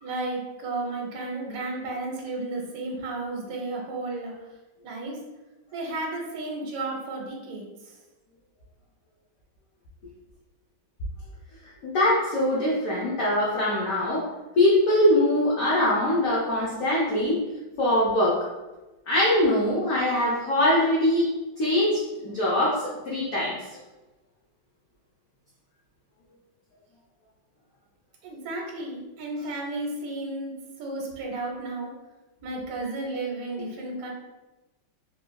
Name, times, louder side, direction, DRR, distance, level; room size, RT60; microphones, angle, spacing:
voice 1, 0.0-4.3 4.8-5.1 5.7-7.6 28.2-30.5 30.8-31.9 32.4-34.1, right 2 dB, 60° right, -1 dB, 1.0 m, -33 dB
voice 2, 11.8-14.2 14.6-17.4 17.8-18.4 19.1-21.3 21.6-23.5, left 1 dB, 70° left, -6 dB, 0.8 m, -22 dB
3.3 x 3.1 x 2.2 m, 1.1 s
omnidirectional pair, 2.1 m